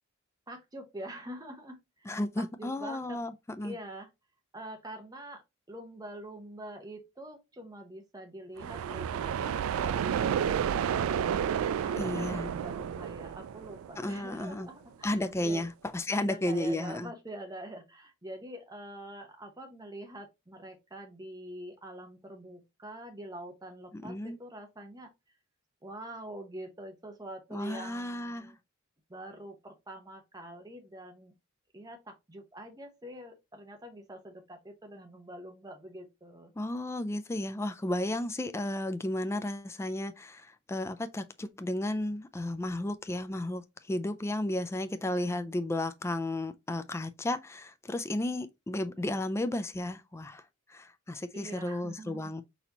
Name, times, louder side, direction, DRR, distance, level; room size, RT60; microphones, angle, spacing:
voice 1, 0.5-3.2 3.6-4.1 4.5-5.4 5.7-11.4 11.8-15.7 16.1-25.1 25.8-28.6 29.1-31.3 31.7-36.5 51.3-52.3, right 1 dB, 20° right, 0.9 m, -45 dB
voice 2, 2.1-3.8 11.9-12.5 14.0-14.7 15.0-17.1 23.9-24.4 27.5-28.5 36.6-52.4, left 1 dB, 15° left, 0.3 m, -33 dB
sound 1, 8.6-14.3, right 8 dB, 80° right, 0.3 m, -31 dB
4.2 x 4.1 x 2.9 m
head